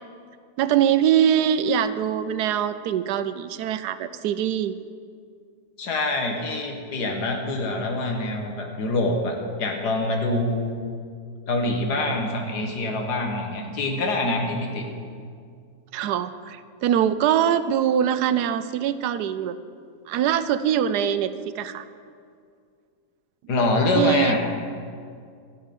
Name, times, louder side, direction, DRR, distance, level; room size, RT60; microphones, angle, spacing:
voice 1, 0.6-4.7 15.9-19.6 20.1-21.8 24.0-24.4, right 9 dB, 90° right, 13 dB, 1.2 m, -23 dB
voice 2, 5.8-10.7 11.5-14.8 23.5-24.4, left 2 dB, 85° left, 2 dB, 1.9 m, -25 dB
13.0 x 6.0 x 9.2 m, 2.2 s
omnidirectional pair, 1.7 m